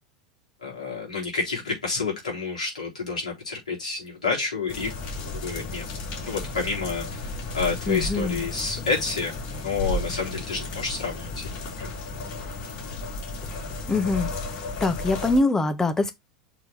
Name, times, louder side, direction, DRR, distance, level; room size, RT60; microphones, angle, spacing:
voice 1, 0.6-5.9 6.2-11.5 11.8-11.9, left 4 dB, 85° left, 4.0 m, -29 dB
sound 1, 4.7-15.4, left 3 dB, 60° left, 3.2 m, -33 dB
voice 2, 7.9-8.4 13.9-14.3 14.8-16.1, left 2 dB, 15° left, 1.4 m, -23 dB
6.3 x 4.2 x 4.2 m
figure-of-eight pair, 85°, 4 cm